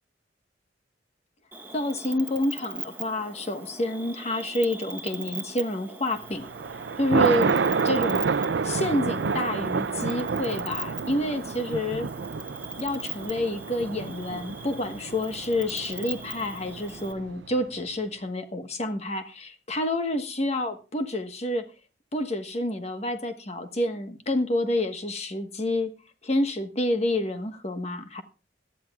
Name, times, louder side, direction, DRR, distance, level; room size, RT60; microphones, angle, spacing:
Cricket, 1.5-17.1, right 4 dB, 10° right, 1.6 m, -41 dB
voice 1, 1.7-6.5 7.0-7.5 7.8-8.2 8.6-12.1 12.8-21.7 22.1-25.9 26.2-28.2, left 1 dB, 35° left, 1.3 m, -28 dB
Thunder, 6.3-17.6, right 5 dB, 70° right, 0.5 m, -29 dB
18.0 x 12.0 x 2.4 m
head